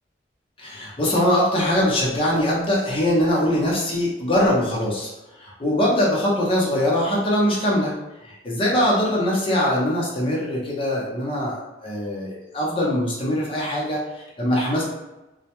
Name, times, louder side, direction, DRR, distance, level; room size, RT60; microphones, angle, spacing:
voice 1, 0.6-7.9 8.2-14.9, left 1 dB, 30° left, -4 dB, 0.6 m, -22 dB
2.1 x 2.1 x 2.8 m, 1.0 s
head